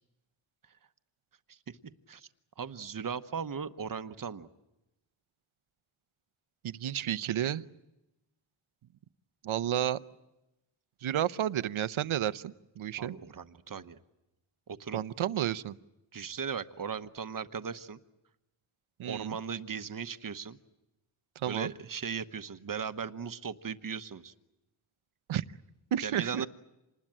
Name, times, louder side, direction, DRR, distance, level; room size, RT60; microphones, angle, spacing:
voice 1, 2.6-4.5 13.0-14.0 14.7-15.0 16.1-18.0 19.0-20.6 21.5-24.3 26.0-26.5, right 6 dB, 40° right, 11 dB, 1.1 m, -38 dB
voice 2, 6.6-7.6 9.4-10.0 11.0-13.1 14.9-15.8 19.0-19.4 21.4-21.7 25.3-25.4 25.9-26.5, right 11 dB, 80° right, 15 dB, 0.8 m, -31 dB
27.0 x 20.0 x 8.8 m, 0.96 s
wide cardioid pair, 105°, 48 cm